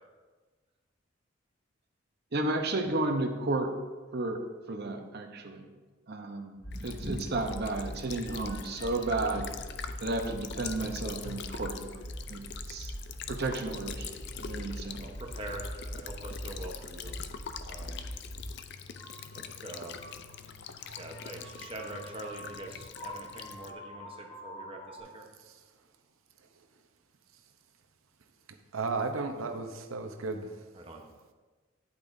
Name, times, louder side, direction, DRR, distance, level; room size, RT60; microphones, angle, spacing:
voice 1, 2.3-3.7 4.1-4.4 4.7-5.7 6.1-9.5 10.0-12.9 13.3-14.1 14.4-15.1, right 2 dB, 50° right, 4 dB, 0.8 m, -33 dB
sound 1, 6.6-18.5 18.9-25.0, equal, 25° left, 2.5 m, -43 dB
Child speech kid speaking / Bird vocalization bird call bird song / Stream, 6.7-23.7, left 7 dB, 55° left, 0.4 m, -44 dB
voice 2, 6.7-7.3 15.0-17.3 17.6-18.1 19.3-20.1 21.0-25.3 30.7-31.1, right 1 dB, 25° right, 2 dB, 1.0 m, -43 dB
voice 3, 28.7-30.6, right 3 dB, 90° right, 6 dB, 0.8 m, -34 dB
9.7 x 8.6 x 2.7 m, 1.3 s
head